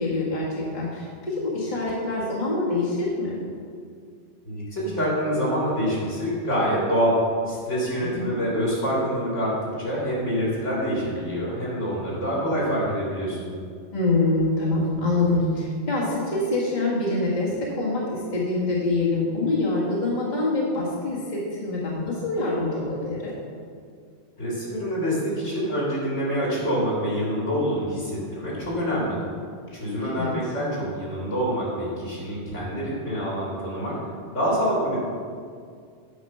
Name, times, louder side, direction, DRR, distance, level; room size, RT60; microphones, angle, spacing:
voice 1, 0.0-3.4 8.0-8.4 13.9-23.3 30.2-30.3, left 2 dB, 35° left, -6 dB, 1.6 m, -25 dB
voice 2, 4.4-13.5 24.4-29.3 29.7-34.0 34.3-35.0, equal, 75° left, -6 dB, 2.8 m, -26 dB
8.6 x 5.0 x 5.6 m, 2.2 s
omnidirectional pair, 1.3 m